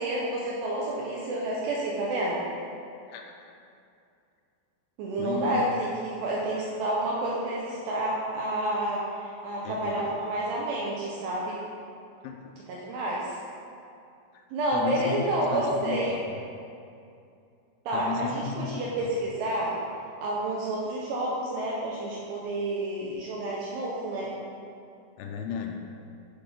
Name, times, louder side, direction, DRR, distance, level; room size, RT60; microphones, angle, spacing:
voice 1, 0.0-2.4 5.0-9.0 9.4-11.6 12.7-13.4 14.5-16.1 17.9-19.8 20.2-24.3, right 1 dB, 85° right, -4 dB, 2.5 m, -29 dB
voice 2, 3.1-3.5 5.2-5.6 9.6-10.2 12.2-12.5 14.3-14.4 14.7-16.2 17.9-18.7 19.0-19.1 25.2-25.8, left 6 dB, 85° left, 3 dB, 2.9 m, -35 dB
8.4 x 4.0 x 5.1 m, 2.5 s
omnidirectional pair, 5.5 m